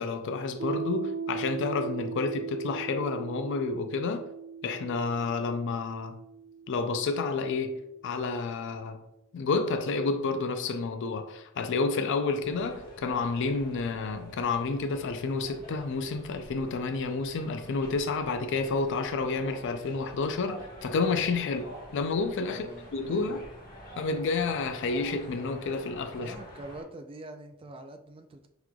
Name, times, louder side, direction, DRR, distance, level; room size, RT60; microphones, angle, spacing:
voice 1, 0.0-4.3 4.6-6.2 6.7-9.0 9.3-23.4 24.0-26.3, left 4 dB, 55° left, 0.4 m, -30 dB
Piano, 0.6-7.8, right 6 dB, 75° right, 0.7 m, -39 dB
sound 1, 12.4-26.8, equal, 40° left, 1.2 m, -47 dB
voice 2, 22.5-23.4 26.2-28.5, right 2 dB, 25° right, 0.3 m, -44 dB
5.8 x 3.1 x 2.3 m
head